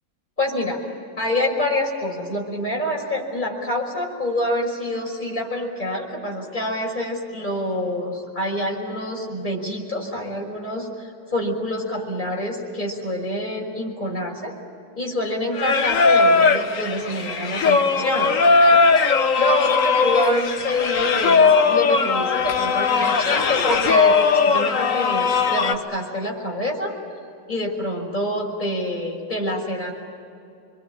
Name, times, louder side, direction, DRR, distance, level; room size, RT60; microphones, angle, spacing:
voice 1, 0.4-0.8 1.2-14.5 15.0-18.4 18.7-18.8 19.1-26.9 27.5-29.9, left 1 dB, 20° left, -2 dB, 6.0 m, -26 dB
Singing, 15.5-25.7, left 4 dB, 45° left, 1.4 m, -18 dB
28.0 x 22.5 x 8.8 m, 2.6 s
omnidirectional pair, 2.1 m